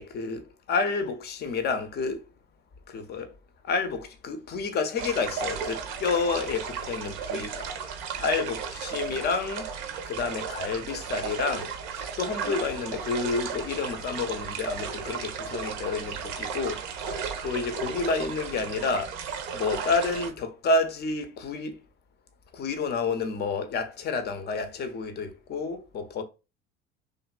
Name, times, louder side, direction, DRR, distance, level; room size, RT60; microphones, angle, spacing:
voice 1, 0.0-2.2 2.9-3.3 3.6-7.7 8.2-9.7 10.1-19.2 19.5-21.8 22.5-26.2, left 4 dB, 30° left, 0.6 m, -30 dB
sound 1, 5.0-20.3, right 6 dB, 55° right, 0.6 m, -34 dB
2.9 x 2.5 x 2.2 m
figure-of-eight pair, 65°, 36 cm